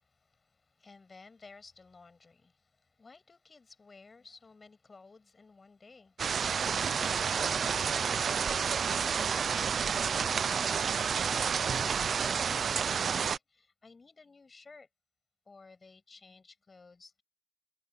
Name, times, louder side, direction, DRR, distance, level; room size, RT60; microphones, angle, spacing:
voice 1, 0.1-2.7 3.0-7.8 8.1-11.1 11.7-14.9 15.5-17.2, left 4 dB, 40° left, 6.3 m, -55 dB
sound 1, 6.2-13.4, right 6 dB, 75° right, 0.6 m, -30 dB
wide cardioid pair, 120°, 0 cm